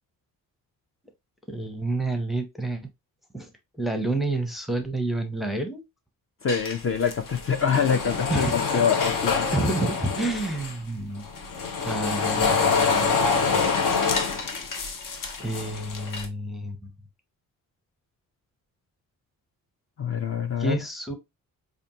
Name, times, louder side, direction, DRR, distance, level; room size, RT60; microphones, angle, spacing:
voice 1, 1.5-2.8 3.3-3.5 3.8-5.8 8.3-8.6 9.5-11.2 11.8-13.7 15.4-16.8 20.6-21.1, right 2 dB, ahead, 0.6 m, -29 dB
voice 2, 6.4-9.5 20.0-20.8, left 7 dB, 40° left, 0.6 m, -25 dB
sound 1, 6.5-10.8 11.2-16.3, left 5 dB, 70° left, 0.9 m, -26 dB
5.1 x 2.6 x 2.7 m
cardioid pair, 130°, 34 cm